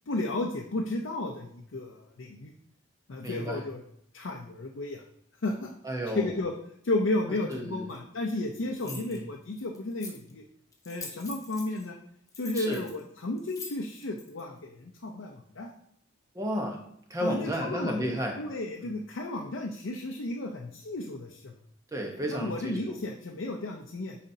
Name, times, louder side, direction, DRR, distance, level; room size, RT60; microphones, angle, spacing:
voice 1, 0.1-2.5 3.1-3.8 4.1-5.0 5.4-5.7 6.1-6.5 6.8-10.4 10.9-12.0 12.4-15.7 17.2-21.6 22.3-24.2, left 2 dB, 75° left, 0 dB, 0.6 m, -33 dB
voice 2, 3.2-3.6 5.8-6.5 7.5-7.9 8.8-9.3 12.5-12.8 16.3-16.8 17.1-18.4 18.8-19.0 21.9-23.0, equal, 15° right, 1 dB, 1.0 m, -33 dB
sound 1, 7.9-8.0 8.7-9.2 9.7-10.3 10.7-11.9 12.3-14.4, left 4 dB, 15° left, 0.8 m, -43 dB
9.0 x 4.2 x 2.7 m, 0.72 s
head